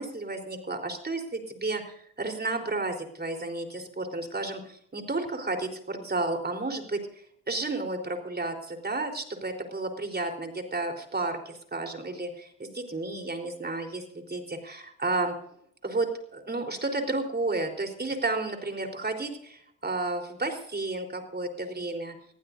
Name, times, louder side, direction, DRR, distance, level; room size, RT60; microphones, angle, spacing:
voice 1, 0.0-7.0 7.5-15.3 15.8-22.1, right 2 dB, 25° right, 4 dB, 3.9 m, -32 dB
22.5 x 15.0 x 2.7 m, 0.69 s
supercardioid pair, 60°, 36 cm